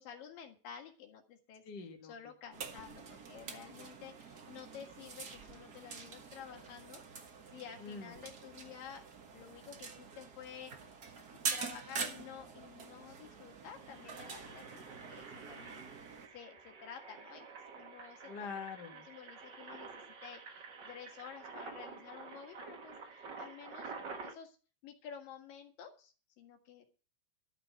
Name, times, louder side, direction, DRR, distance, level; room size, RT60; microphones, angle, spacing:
voice 1, 0.0-1.6 2.0-7.0 7.5-9.0 9.3-10.7 11.5-15.8 16.3-18.3 18.9-19.9 20.2-23.9 24.2-24.6 24.8-26.8, left 8 dB, 75° left, 4 dB, 3.4 m, -51 dB
voice 2, 1.6-2.1 7.8-8.1 18.3-19.1, left 5 dB, 45° left, 4 dB, 1.5 m, -44 dB
sound 1, 2.5-16.3, right 5 dB, 65° right, 0.9 m, -45 dB
Engine, 12.6-12.7 12.9-13.2 13.6-24.3, right 4 dB, 45° right, 1.5 m, -49 dB
12.5 x 5.9 x 8.1 m, 0.37 s
omnidirectional pair, 4.0 m